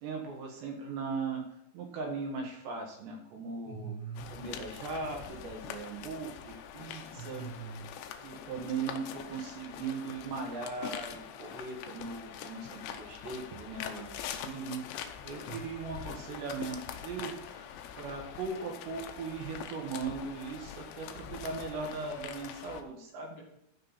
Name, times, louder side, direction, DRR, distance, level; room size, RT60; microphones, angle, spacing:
voice 1, 0.0-1.4 1.7-3.9 4.3-7.5 8.2-17.7 18.0-23.4, right 4 dB, 70° right, 1 dB, 3.2 m, -39 dB
voice 2, 3.6-4.3 7.1-7.8 15.4-15.6, right 6 dB, 55° left, -3 dB, 3.5 m, -42 dB
sound 1, 4.2-22.8, left 9 dB, 80° left, 2.5 m, -44 dB
15.0 x 5.5 x 4.1 m, 0.80 s
omnidirectional pair, 5.8 m